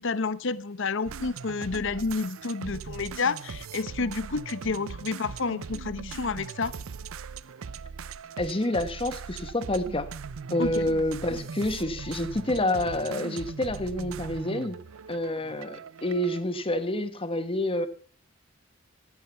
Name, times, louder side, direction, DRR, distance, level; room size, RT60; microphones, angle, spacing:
voice 1, 0.0-6.7 10.6-10.9, left 4 dB, 65° left, 0.8 m, -30 dB
sound 1, 1.0-16.4, right 5 dB, 90° right, 0.5 m, -40 dB
voice 2, 8.4-10.1 10.5-14.8 15.1-17.9, left 1 dB, 25° left, 1.2 m, -28 dB
16.0 x 11.0 x 5.6 m
head